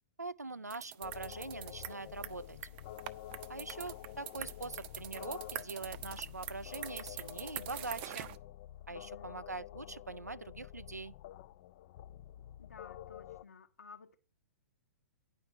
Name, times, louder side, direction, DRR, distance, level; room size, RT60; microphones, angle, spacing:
voice 1, 0.2-2.6 3.5-8.3 8.9-11.1, right 3 dB, 90° right, 0.5 m, -43 dB
sound 1, 0.7-8.4, right 13 dB, 35° right, 0.7 m, -45 dB
sound 2, 1.0-13.4, left 13 dB, 40° left, 0.5 m, -49 dB
voice 2, 8.9-9.5 12.6-14.2, left 5 dB, 75° left, 1.0 m, -56 dB
10.0 x 5.3 x 8.2 m
figure-of-eight pair, 115°, 9 cm